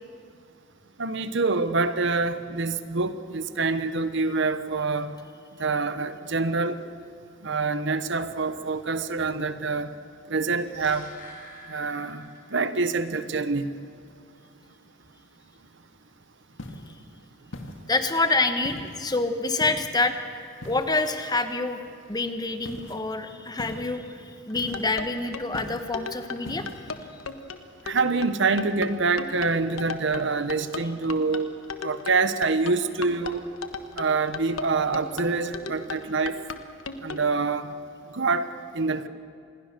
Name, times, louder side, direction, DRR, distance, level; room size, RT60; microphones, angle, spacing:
voice 1, 1.0-5.2 5.6-6.8 7.4-9.9 10.3-11.1 11.7-13.7 27.9-31.5 31.8-33.4 34.0-36.4 37.0-37.7 38.1-38.5 38.7-39.1, right 4 dB, 60° right, 11 dB, 1.1 m, -26 dB
sound 1, 10.4-12.8 13.1-13.2, left 1 dB, 40° left, 4.9 m, -47 dB
sound 2, 16.6-17.0 17.5-18.1 18.6-19.0 19.6-20.0 20.6-21.1 22.6-23.0 23.6-24.0 24.5-25.0 25.5-26.0 26.4-26.8, left 1 dB, 65° left, 2.0 m, -40 dB
voice 2, 17.9-20.1 20.6-21.8 22.1-24.1 24.5-26.6, left 3 dB, 20° left, 8 dB, 1.3 m, -26 dB
sound 3, 24.5-37.2, left 5 dB, 80° left, 1.4 m, -36 dB
27.0 x 21.5 x 6.8 m, 2.4 s
head